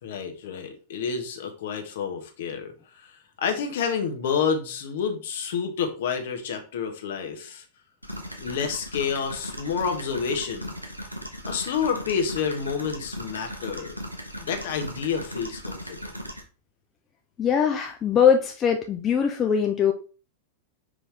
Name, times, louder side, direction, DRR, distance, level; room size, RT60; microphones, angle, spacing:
voice 1, 0.0-7.6 8.4-10.7 11.4-14.0 14.4-16.2, left 6 dB, 55° left, 5 dB, 1.3 m, -29 dB
sound 1, 8.0-16.4, equal, 90° right, 1.1 m, -37 dB
voice 2, 17.4-19.9, left 7 dB, 25° left, 3 dB, 0.7 m, -21 dB
5.8 x 4.9 x 3.4 m, 0.35 s
figure-of-eight pair, 90°, 0 cm